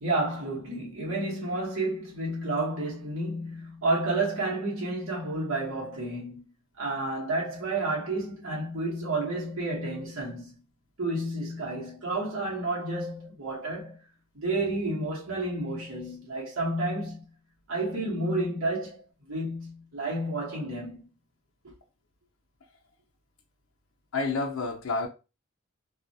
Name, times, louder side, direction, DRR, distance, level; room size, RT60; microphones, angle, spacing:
voice 1, 0.0-6.4 6.8-10.5 11.0-14.0 14.3-17.3 17.7-21.0 21.6-21.7, right 2 dB, 85° right, 0.9 m, -31 dB
voice 2, 24.1-25.1, left 3 dB, 90° left, 0.5 m, -29 dB
2.3 x 2.0 x 2.6 m
head